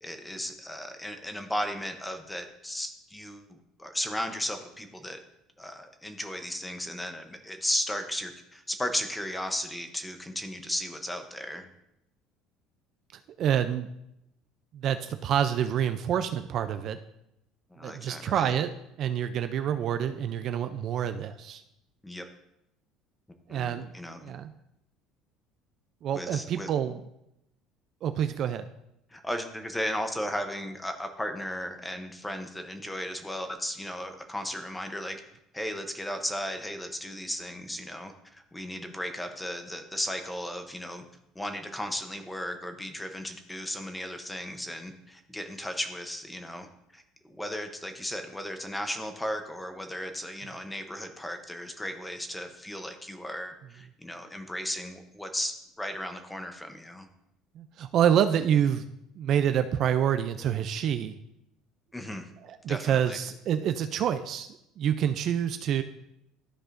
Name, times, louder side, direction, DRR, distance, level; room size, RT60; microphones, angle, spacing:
voice 1, 0.0-5.2 5.6-11.7 17.7-18.5 22.0-22.2 23.5-24.3 26.1-26.7 29.1-35.2 35.5-41.0 41.3-46.7 46.9-57.1 61.9-62.3 62.7-63.2, left 1 dB, 5° left, 6 dB, 0.7 m, -35 dB
voice 2, 13.4-13.9 14.7-17.0 17.8-18.7 19.0-21.6 23.5-23.9 24.2-24.5 26.0-27.0 28.0-28.7 57.6-58.9 59.2-61.2 62.4-65.8, right 9 dB, 45° right, 9 dB, 0.3 m, -27 dB
13.5 x 4.8 x 2.5 m, 0.83 s
cardioid pair, 160°, 0 cm